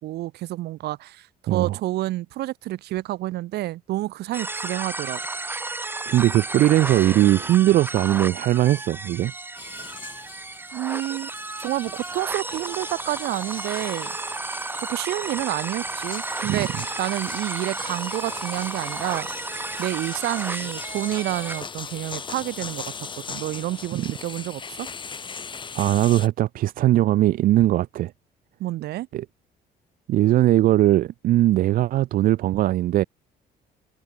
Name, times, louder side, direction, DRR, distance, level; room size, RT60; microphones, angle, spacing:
voice 1, 0.0-5.2 10.7-11.3 11.6-14.2 14.7-19.3 19.8-24.9 28.6-29.1, right 16 dB, 75° right, 1.3 m, -29 dB
voice 2, 1.5-1.8 6.1-9.3 16.5-16.8 23.9-24.1 25.7-28.1 29.1-29.2 30.1-33.0, right 14 dB, 55° right, 0.4 m, -20 dB
sound 1, 4.3-21.6, right 3 dB, 10° right, 0.8 m, -33 dB
sound 2, 9.6-26.3, left 5 dB, 30° left, 1.6 m, -39 dB
open air
cardioid pair, 110°, 17 cm